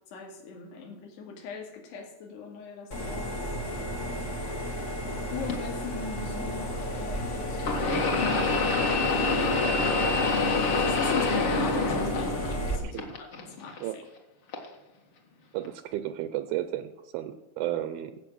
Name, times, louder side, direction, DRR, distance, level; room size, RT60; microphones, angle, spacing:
voice 1, 0.1-4.3 5.1-14.0, left 5 dB, 90° left, 1 dB, 4.3 m, -41 dB
sound 1, 2.9-12.8, equal, 70° left, 0.7 m, -33 dB
sound 2, 5.5-5.6 7.6-12.7 13.0-13.8 14.5-14.7 15.6-15.7, left 3 dB, 45° left, 1.9 m, -26 dB
voice 2, 15.5-18.2, right 13 dB, 80° right, 11 dB, 2.3 m, -33 dB
16.5 x 6.8 x 6.3 m, 1.1 s
omnidirectional pair, 4.6 m